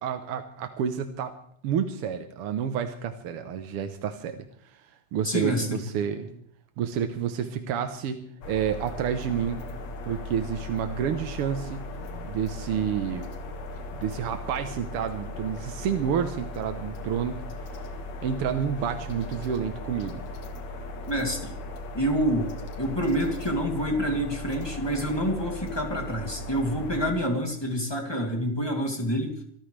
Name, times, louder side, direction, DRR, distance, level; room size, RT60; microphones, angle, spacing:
voice 1, 0.0-1.3 1.6-4.8 5.1-6.3 6.8-9.6 10.0-11.9 12.2-13.3 14.0-17.4 18.2-20.2, right 8 dB, 65° right, 7 dB, 1.6 m, -29 dB
voice 2, 5.2-5.8 13.7-13.8 21.0-21.6 21.9-22.5 22.8-29.4, equal, 10° left, 1 dB, 2.4 m, -27 dB
sound 1, 8.4-27.1, left 1 dB, 60° left, 3.0 m, -38 dB
25.5 x 14.0 x 3.4 m, 0.63 s
omnidirectional pair, 3.5 m